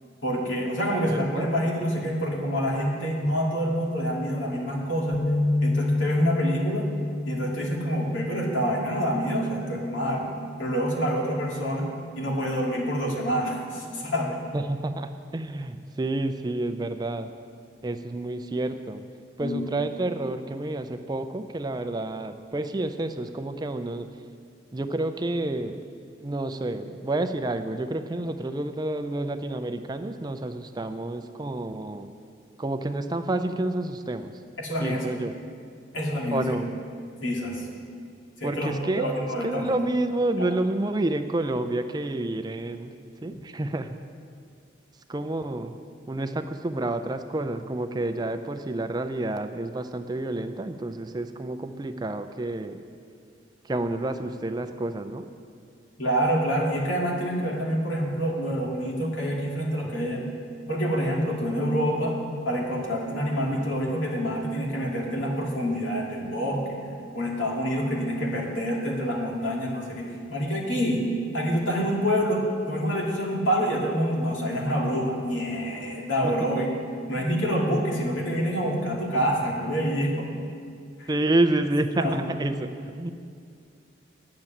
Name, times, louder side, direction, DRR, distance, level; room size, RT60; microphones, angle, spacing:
voice 1, 0.2-5.2 5.6-6.9 7.3-10.3 10.6-11.9 12.2-14.4 19.4-19.6 34.6-35.2 35.9-36.4 37.2-37.7 38.4-39.7 56.0-60.2 60.7-62.2 62.4-66.8 67.1-71.1 71.3-76.8 77.1-80.3 81.0-81.1 82.0-82.2, equal, 85° left, -2 dB, 2.2 m, -27 dB
voice 2, 1.0-1.5 14.5-17.3 17.8-19.0 19.4-24.1 24.7-25.8 26.2-32.1 32.6-34.3 34.8-35.3 36.3-36.7 38.4-42.9 43.2-44.0 45.1-45.8 46.1-52.8 53.6-55.3 76.2-76.6 77.2-77.3 81.1-83.1, right 2 dB, 20° right, 8 dB, 0.4 m, -29 dB
sound 1, 5.1-11.4, left 2 dB, 35° left, 0.8 m, -29 dB
9.6 x 7.4 x 9.0 m, 2.3 s
head